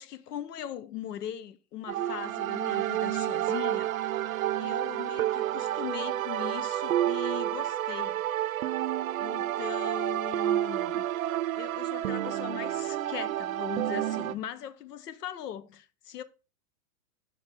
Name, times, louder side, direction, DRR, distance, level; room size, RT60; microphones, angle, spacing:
voice 1, 0.0-3.9 4.6-8.2 9.2-11.0 11.5-16.2, left 11 dB, 80° left, 0.9 m, -40 dB
sound 1, 1.9-14.3, right 13 dB, 60° right, 0.6 m, -30 dB
6.6 x 4.7 x 3.5 m
supercardioid pair, 175°, 46 cm